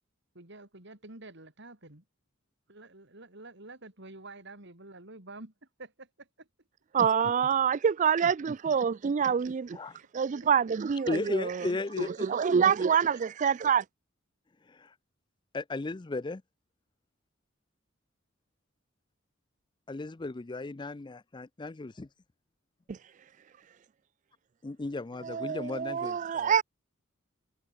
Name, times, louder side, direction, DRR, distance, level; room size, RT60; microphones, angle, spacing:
voice 1, 0.3-2.0 2.7-6.5 10.3-10.8 12.0-12.1, right 2 dB, 60° right, 3.9 m, -49 dB
voice 2, 6.9-9.8 10.1-11.7 12.2-13.8 22.9-23.0 25.2-26.6, right 7 dB, 40° right, 0.3 m, -26 dB
voice 3, 11.1-12.1 14.7-14.9 15.5-16.4 19.9-22.1 24.6-26.6, left 2 dB, 25° left, 0.5 m, -35 dB
head